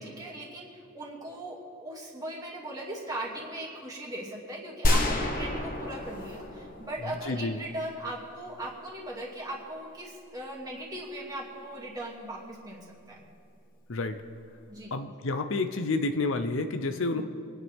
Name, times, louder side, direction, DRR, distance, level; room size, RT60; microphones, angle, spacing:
voice 1, 0.0-12.8 13.1-13.3 14.7-15.0 17.1-17.2, right 1 dB, 15° right, -3 dB, 2.4 m, -39 dB
sound 1, 4.8-7.7, left 1 dB, 40° left, 1.4 m, -29 dB
voice 2, 7.3-7.6 13.9-14.2 14.9-17.2, left 3 dB, 60° left, 8 dB, 0.7 m, -29 dB
26.0 x 9.8 x 3.6 m, 2.6 s
head